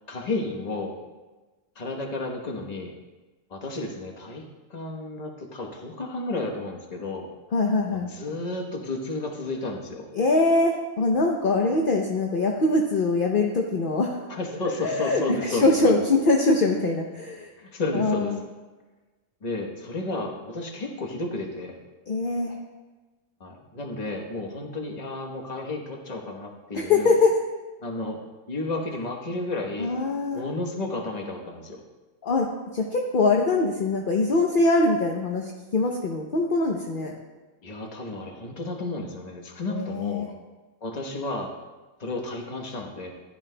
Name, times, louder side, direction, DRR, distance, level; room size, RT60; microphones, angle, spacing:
voice 1, 0.1-1.0 1.7-2.9 3.5-7.3 7.9-10.1 14.3-15.9 17.6-18.4 19.4-21.8 23.4-27.1 27.8-28.2 28.5-30.0 30.3-31.8 37.6-40.3 40.8-41.5 42.0-43.1, left 2 dB, 30° left, 1 dB, 1.1 m, -32 dB
voice 2, 7.5-8.1 10.1-14.2 14.8-17.5 17.9-18.4 22.1-22.5 26.7-27.3 29.8-30.4 32.2-32.5 32.7-37.1 39.7-40.3, left 3 dB, 45° left, 0 dB, 0.7 m, -23 dB
14.5 x 11.0 x 2.2 m, 1.2 s
omnidirectional pair, 1.6 m